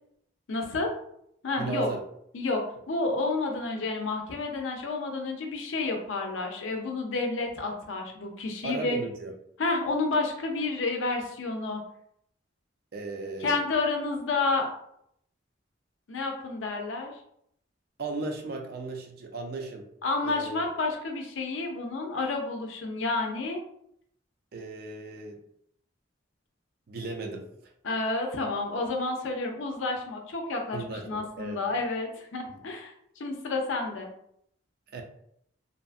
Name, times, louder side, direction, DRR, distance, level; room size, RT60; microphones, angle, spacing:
voice 1, 0.5-0.9 1.4-1.9 2.3-2.6 2.9-9.0 9.6-11.8 13.4-14.7 16.1-17.1 20.0-23.6 27.8-34.1, left 3 dB, 90° left, 2 dB, 0.5 m, -30 dB
voice 2, 1.6-2.0 8.6-9.3 12.9-13.6 18.0-19.9 20.2-20.6 24.5-25.4 26.9-27.5 30.7-31.6 34.9-35.0, right 3 dB, 55° right, 3 dB, 0.4 m, -36 dB
2.6 x 2.3 x 2.4 m, 0.72 s
head